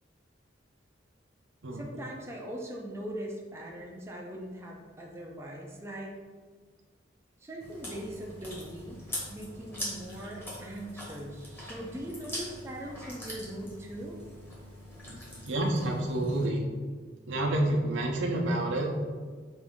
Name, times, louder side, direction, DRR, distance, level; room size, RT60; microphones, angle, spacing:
voice 1, 1.7-6.1 7.4-9.0 9.3-14.2, right 1 dB, 15° right, -2 dB, 0.5 m, -41 dB
Chewing mastication, 7.6-16.4, left 1 dB, 10° left, 1.0 m, -42 dB
voice 2, 15.4-16.6 17.3-18.9, right 1 dB, 85° right, 0 dB, 0.7 m, -28 dB
5.0 x 2.6 x 3.6 m, 1.5 s
head